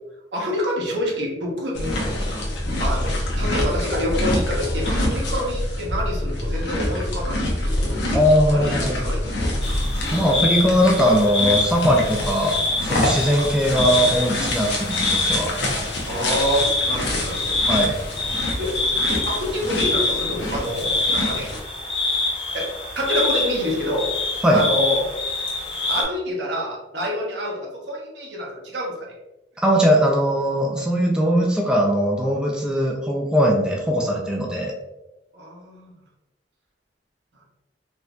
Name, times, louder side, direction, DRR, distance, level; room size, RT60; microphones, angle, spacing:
voice 1, 0.3-1.9 2.8-8.1 8.5-9.6 16.1-17.6 17.8-18.1 18.6-18.8 19.1-21.5 22.5-24.1 24.5-25.1 25.9-29.1 35.3-35.9, equal, 75° right, -3 dB, 1.0 m, -27 dB
sound 1, 1.7-21.6, left 1 dB, 70° left, 0.8 m, -26 dB
voice 2, 8.1-9.0 10.1-15.5 17.7-18.0 24.4-24.6 29.6-34.7, equal, 5° right, -1 dB, 0.4 m, -20 dB
sound 2, 9.6-26.0, left 3 dB, 30° left, 0.9 m, -26 dB
4.2 x 2.6 x 2.3 m, 0.97 s
head